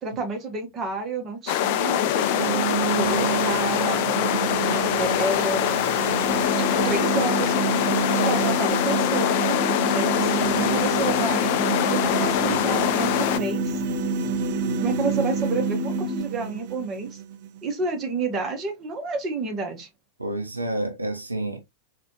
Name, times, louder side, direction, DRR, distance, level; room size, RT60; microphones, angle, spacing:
voice 1, 0.0-4.2 5.0-6.0 6.6-7.5 8.2-11.5 11.9-13.8 14.8-17.2 17.6-19.9, right 4 dB, 30° right, 1.1 m, -30 dB
sound 1, 1.5-13.4, left 11 dB, 50° left, 0.4 m, -24 dB
sound 2, 2.1-18.1, right 11 dB, 50° right, 0.4 m, -30 dB
sound 3, 6.2-16.2, left 3 dB, 5° left, 0.8 m, -30 dB
voice 2, 20.2-21.6, right 1 dB, 80° right, 0.7 m, -29 dB
4.0 x 2.5 x 3.0 m
figure-of-eight pair, 90°, 0 cm